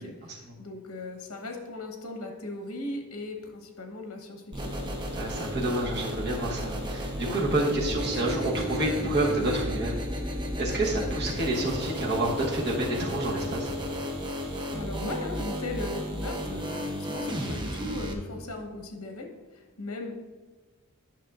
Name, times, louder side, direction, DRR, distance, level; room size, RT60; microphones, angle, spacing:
voice 1, 0.0-5.0 14.5-20.1, left 2 dB, 70° left, 3 dB, 1.0 m, -38 dB
sound 1, 4.5-18.1, equal, 20° right, 0.7 m, -33 dB
voice 2, 5.1-9.9 10.6-13.7, right 1 dB, 50° right, -3 dB, 1.2 m, -28 dB
9.1 x 6.1 x 2.5 m, 1.3 s
head